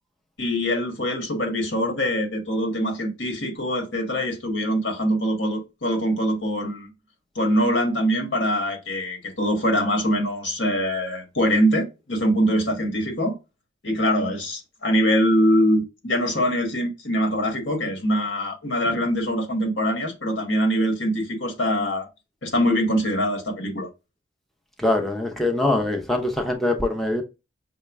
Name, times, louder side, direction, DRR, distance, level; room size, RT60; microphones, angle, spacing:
voice 1, 0.4-6.9 7.3-13.3 13.8-22.1 22.4-23.9, equal, 75° left, 1.3 m, -23 dB
voice 2, 24.8-27.2, left 2 dB, ahead, 0.6 m, -23 dB
5.6 x 2.2 x 3.4 m
head